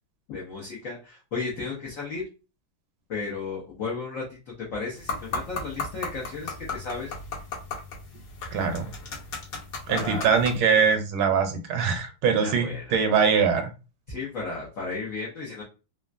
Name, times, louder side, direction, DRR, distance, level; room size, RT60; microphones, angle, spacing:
voice 1, 0.3-2.2 3.1-7.1 9.9-10.3 12.4-13.0 14.1-15.6, left 4 dB, 85° left, -3 dB, 0.7 m, -34 dB
sound 1, 5.0-10.6, left 4 dB, 60° left, 1.2 m, -36 dB
voice 2, 8.5-8.9 9.9-13.7, right 6 dB, 75° right, 5 dB, 1.4 m, -23 dB
3.6 x 2.1 x 2.4 m, 0.31 s
omnidirectional pair, 2.4 m